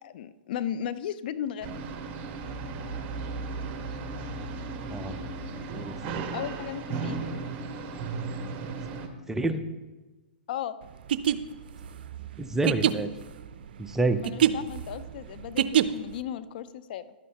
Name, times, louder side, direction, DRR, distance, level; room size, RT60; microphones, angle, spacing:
voice 1, 0.0-1.8 6.3-7.3 10.5-10.8 14.2-17.1, left 10 dB, 55° left, 14 dB, 0.5 m, -35 dB
sound 1, 1.6-9.1, right 4 dB, 35° right, 1.2 m, -35 dB
voice 2, 5.7-6.2 9.3-9.6 12.4-13.1 13.8-14.2, right 2 dB, 5° right, 8 dB, 0.6 m, -28 dB
sound 2, 11.0-16.2, right 10 dB, 65° right, 0.5 m, -26 dB
12.0 x 9.2 x 2.9 m, 1.2 s
hypercardioid pair, 120°, 6 cm